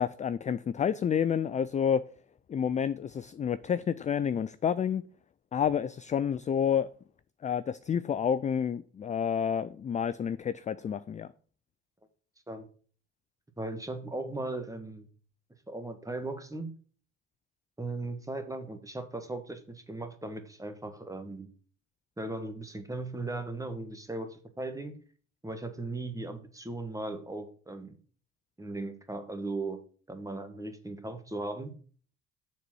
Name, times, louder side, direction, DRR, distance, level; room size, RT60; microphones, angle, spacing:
voice 1, 0.0-2.0 2.5-5.0 5.5-6.9 7.4-11.3, left 8 dB, 20° left, 0.3 m, -29 dB
voice 2, 13.6-15.1 15.7-16.7 17.8-21.5 22.2-25.0 25.4-28.0 28.6-29.8 30.1-31.7, right 2 dB, 10° right, 1.4 m, -37 dB
6.7 x 4.2 x 6.1 m
hypercardioid pair, 65°, 34 cm